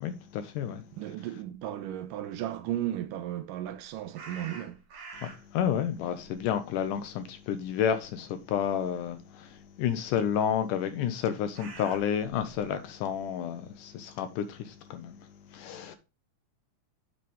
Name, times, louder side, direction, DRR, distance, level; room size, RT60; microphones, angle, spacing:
voice 1, 0.0-0.8 5.2-15.2 15.5-16.0, left 8 dB, 75° left, 2.0 m, -30 dB
voice 2, 1.0-4.8, right 12 dB, 80° right, 2.1 m, -35 dB
sound 1, 4.1-5.6 6.0-7.7 8.0-8.2 9.0-9.1 10.9-12.7, right 4 dB, 50° right, 2.6 m, -46 dB
7.7 x 5.5 x 3.4 m
omnidirectional pair, 4.1 m